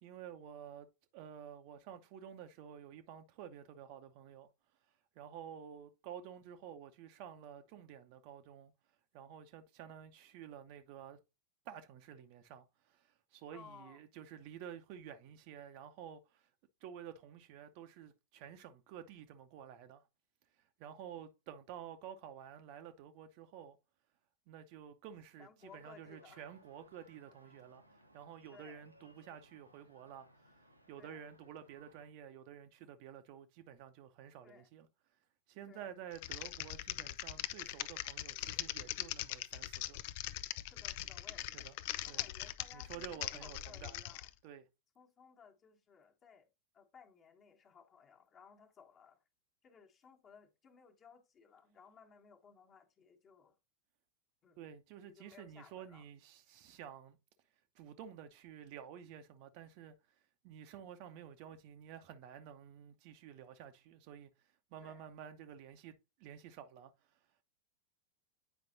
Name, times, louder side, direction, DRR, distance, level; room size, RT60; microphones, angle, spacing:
voice 1, 0.0-0.9 1.1-4.5 5.1-8.7 9.1-11.2 11.6-16.5 16.8-20.1 20.8-23.8 24.5-27.8 28.1-30.5 30.9-34.9 35.5-40.0 41.5-41.7 42.1-42.2 42.7-44.0 44.4-44.6 54.6-57.2 57.7-59.9 60.4-64.3 64.7-65.9 66.2-67.2, right 9 dB, 45° right, 0.8 m, -51 dB
voice 2, 13.5-14.0 25.4-26.5 28.5-28.8 31.0-31.2 34.4-34.7 35.7-35.9 40.6-41.7 42.0-44.3 44.9-46.5 46.7-49.2 49.6-53.6 54.4-54.6 55.1-56.1 64.8-65.1, left 6 dB, 25° left, 1.4 m, -60 dB
sound 1, 25.6-32.1, equal, 90° right, 1.0 m, -64 dB
Typing, 36.1-44.3, left 15 dB, 50° left, 0.4 m, -41 dB
9.1 x 5.1 x 2.6 m
figure-of-eight pair, 90°, 0 cm